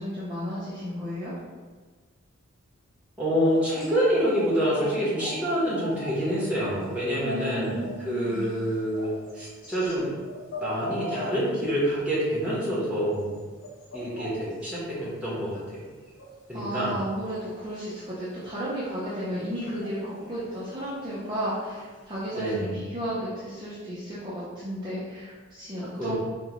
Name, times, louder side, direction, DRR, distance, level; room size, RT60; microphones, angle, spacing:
voice 1, 0.0-1.3 7.2-8.5 16.5-26.1, equal, 20° right, -11 dB, 0.6 m, -33 dB
voice 2, 3.2-10.1 10.6-13.4 13.9-15.8 16.5-17.0 22.4-22.8 25.8-26.2, equal, 5° right, -8 dB, 0.9 m, -27 dB
sound 1, 3.4-6.2 6.4-10.0 10.2-12.5 12.8-12.9 13.1-14.6 16.1-18.0 18.6-18.7 19.3-20.7 20.9-21.0 21.2-21.5 21.8-21.9 22.2-22.6, equal, 65° left, 0.8 m, -40 dB
3.7 x 2.2 x 2.9 m, 1.4 s
head